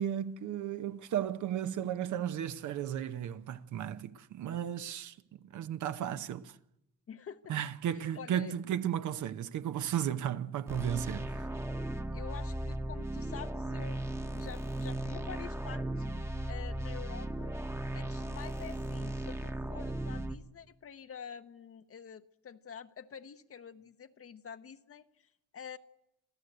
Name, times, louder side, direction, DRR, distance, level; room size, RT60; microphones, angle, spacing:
voice 1, 0.0-5.2 5.4-6.6 7.5-11.5, right 10 dB, 75° right, 0.9 m, -34 dB
voice 2, 7.1-7.5 7.9-8.5 12.1-14.0 14.3-16.1 16.5-17.5 17.9-25.8, left 7 dB, 50° left, 0.9 m, -47 dB
sound 1, 10.7-20.4, right 1 dB, 10° right, 1.0 m, -37 dB
27.0 x 14.5 x 8.0 m
cardioid pair, 90°, 30 cm